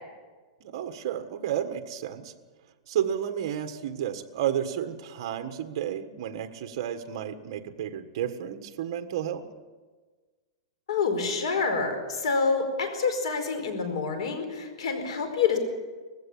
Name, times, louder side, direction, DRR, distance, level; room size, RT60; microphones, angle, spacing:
voice 1, 0.6-2.3 2.9-9.4, right 10 dB, 45° right, 8 dB, 1.5 m, -32 dB
voice 2, 10.9-15.6, left 5 dB, 65° left, 7 dB, 4.6 m, -27 dB
19.5 x 15.5 x 8.6 m, 1.4 s
supercardioid pair, 170°, 3 cm